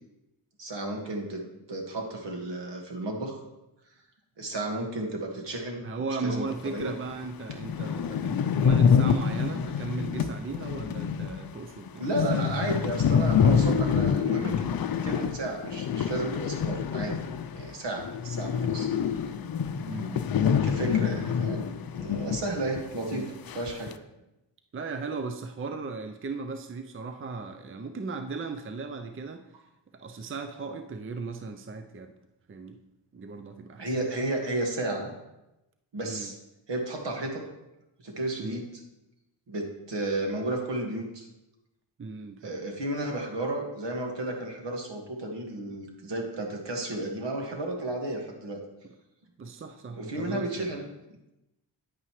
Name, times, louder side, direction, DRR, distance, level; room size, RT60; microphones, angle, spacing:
voice 1, 0.6-3.4 4.4-5.9 6.2-6.9 12.0-14.7 15.0-17.2 17.5-19.2 20.6-21.7 21.9-23.9 33.8-35.1 35.9-36.3 36.7-37.5 38.0-38.8 39.5-41.3 42.4-48.6 50.0-50.9, right 2 dB, 70° right, 2 dB, 1.9 m, -33 dB
voice 2, 5.8-12.6 19.9-20.7 23.1-23.3 24.7-29.4 29.9-32.1 32.5-32.8 33.1-33.9 36.0-36.3 38.4-38.7 42.0-42.6 49.4-50.8, right 4 dB, 30° right, 7 dB, 0.6 m, -37 dB
sound 1, 6.8-6.9 7.2-7.3 7.5-17.7 18.0-22.5 22.8-22.9 23.5-23.9, left 7 dB, 50° left, 0.6 m, -26 dB
9.7 x 8.8 x 3.2 m, 0.94 s
cardioid pair, 80°, 45 cm